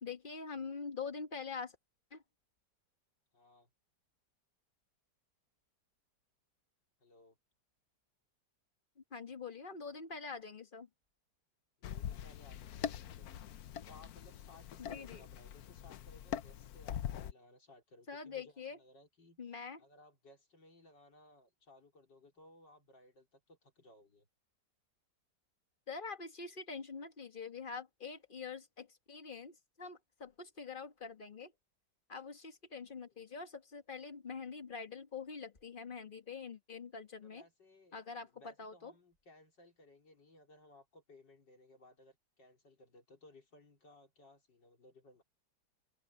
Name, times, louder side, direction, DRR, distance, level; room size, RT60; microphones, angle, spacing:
voice 1, 0.0-1.8 2.1-2.2 9.0-10.9 14.8-15.2 18.1-18.8 19.4-19.8 25.9-31.5 32.1-37.4 37.9-38.9, left 5 dB, 30° left, 1.6 m, -45 dB
voice 2, 3.3-3.7 7.0-7.4 11.9-13.3 13.8-24.3 37.2-38.0 38.2-45.2, left 2 dB, 85° left, 4.9 m, -61 dB
sound 1, 11.8-17.3, left 9 dB, 65° left, 1.1 m, -43 dB
open air
omnidirectional pair, 1.9 m